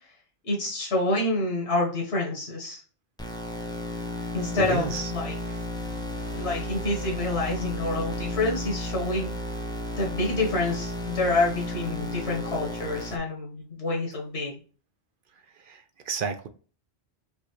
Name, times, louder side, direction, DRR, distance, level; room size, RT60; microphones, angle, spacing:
voice 1, 0.4-2.8 4.3-5.4 6.3-9.3 10.0-14.5, left 2 dB, 90° left, -1 dB, 1.6 m, -27 dB
sound 1, 3.2-13.2, left 1 dB, 5° left, 0.6 m, -33 dB
voice 2, 4.5-5.1 15.7-16.5, right 6 dB, 60° right, 9 dB, 0.6 m, -31 dB
5.2 x 2.6 x 3.1 m, 0.39 s
omnidirectional pair, 1.1 m